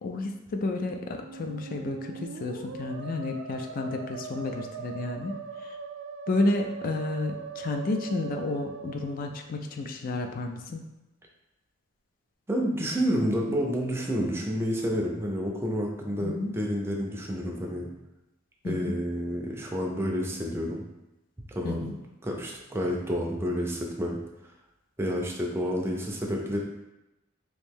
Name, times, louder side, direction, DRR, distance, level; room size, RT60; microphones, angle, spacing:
voice 1, 0.0-5.3 6.3-10.8 16.2-16.5 18.6-19.0 21.6-21.9, left 2 dB, 45° left, 4 dB, 0.4 m, -31 dB
Musical instrument, 1.1-9.9, right 5 dB, 70° right, 0.3 m, -41 dB
voice 2, 12.5-17.9 18.6-20.8 21.5-21.9 22.2-24.2 25.0-26.6, equal, 10° right, -1 dB, 0.5 m, -29 dB
3.1 x 2.6 x 3.5 m, 0.95 s
head